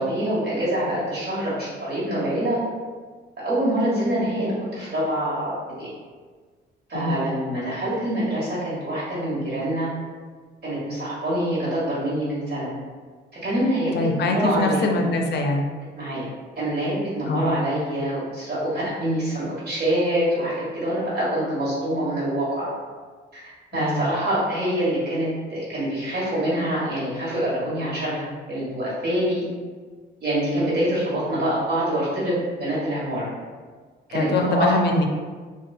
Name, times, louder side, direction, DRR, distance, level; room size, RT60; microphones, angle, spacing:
voice 1, 0.0-2.6 3.4-5.9 6.9-9.9 10.6-12.7 13.4-14.9 15.9-16.3 16.6-22.7 23.3-29.5 30.2-33.3 34.1-34.9, right 1 dB, 50° right, -8 dB, 1.4 m, -25 dB
voice 2, 13.9-15.6 17.3-17.5 23.7-24.0 34.1-35.0, left 2 dB, 60° left, 3 dB, 0.5 m, -23 dB
2.6 x 2.3 x 2.4 m, 1.5 s
cardioid pair, 90°, 20 cm